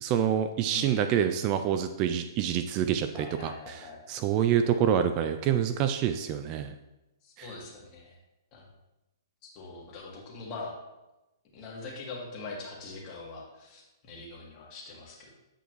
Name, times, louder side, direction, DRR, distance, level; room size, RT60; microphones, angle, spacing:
voice 1, 0.0-6.7 7.4-7.5, right 9 dB, 30° right, 9 dB, 0.4 m, -27 dB
voice 2, 0.7-1.6 3.1-4.0 7.2-8.2 8.5-8.7 9.5-10.7 11.5-15.3, left 3 dB, 30° left, -2 dB, 1.9 m, -43 dB
8.6 x 5.2 x 3.1 m, 0.98 s
hypercardioid pair, 130°, 2 cm